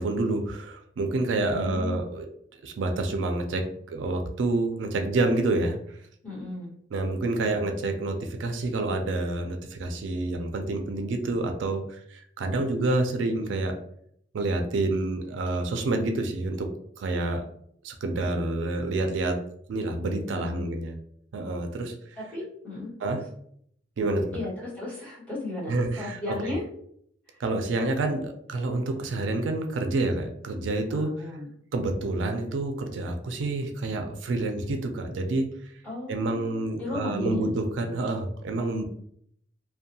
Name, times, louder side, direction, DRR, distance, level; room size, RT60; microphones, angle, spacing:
voice 1, 0.0-2.3 2.6-6.0 6.9-13.8 14.3-17.4 17.8-19.4 19.7-20.9 21.3-22.2 23.0-23.2 24.0-24.4 25.7-26.5 27.4-31.2 31.7-35.5 36.1-38.9, right 2 dB, 80° right, 5 dB, 0.4 m, -28 dB
voice 2, 1.5-2.0 6.2-6.7 20.3-20.7 22.1-23.2 24.3-26.6 27.3-27.4 30.9-31.5 35.8-37.5 37.9-38.1, left 2 dB, 10° left, -8 dB, 1.4 m, -36 dB
2.6 x 2.2 x 2.7 m, 0.68 s
head